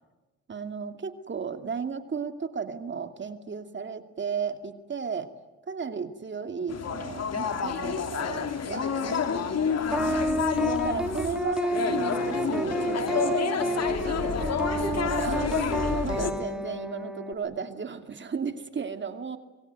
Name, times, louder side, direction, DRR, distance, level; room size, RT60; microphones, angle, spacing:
voice 1, 0.5-5.3 5.7-10.3 10.8-13.4 14.0-15.5 16.0-19.4, right 6 dB, 40° right, 7 dB, 2.5 m, -34 dB
sound 1, 6.7-16.3, left 6 dB, 55° left, 3.1 m, -29 dB
sound 2, 9.9-17.3, right 1 dB, 5° right, 2.9 m, -30 dB
25.5 x 23.0 x 9.5 m, 1.2 s
cardioid pair, 90°, 30 cm